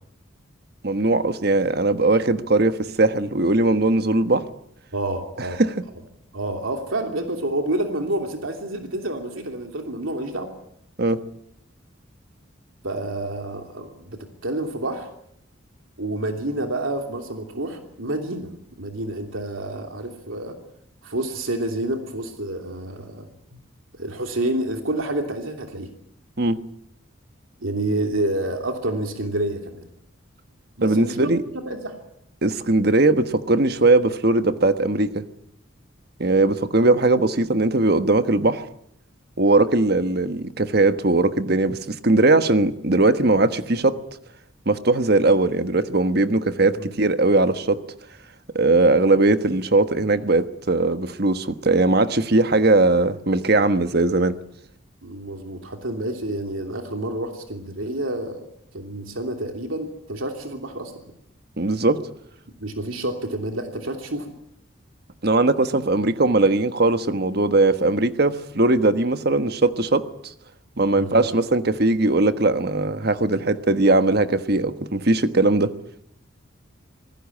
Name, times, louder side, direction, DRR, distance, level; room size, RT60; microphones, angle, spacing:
voice 1, 0.8-4.5 5.6-5.7 11.0-11.3 26.4-26.7 30.8-31.4 32.4-35.2 36.2-38.7 39.4-44.0 44.7-47.8 48.5-54.4 61.6-62.0 65.2-70.3 70.8-75.7, right 2 dB, 50° right, 10 dB, 1.4 m, -19 dB
voice 2, 4.9-5.6 6.3-10.5 12.8-15.1 16.0-18.5 18.8-20.5 21.0-23.6 23.9-25.9 27.6-29.9 30.8-31.3 31.6-31.9 46.8-46.9 55.0-58.5 58.7-60.9 62.6-64.3 71.0-71.3, right 1 dB, 85° right, 4 dB, 3.1 m, -28 dB
26.0 x 19.5 x 8.6 m, 0.72 s
head